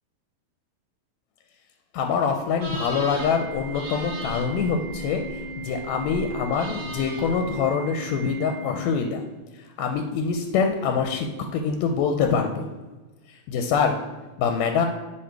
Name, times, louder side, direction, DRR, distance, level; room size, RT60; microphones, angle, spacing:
voice 1, 1.9-9.2 9.8-12.7 13.5-13.9 14.4-14.9, left 6 dB, 80° left, 5 dB, 1.7 m, -25 dB
sound 1, 2.6-7.6, right 1 dB, 50° right, 1.3 m, -38 dB
Organ, 3.2-9.2, right 1 dB, 80° right, 1.6 m, -37 dB
6.5 x 3.5 x 4.5 m, 1.2 s
omnidirectional pair, 3.3 m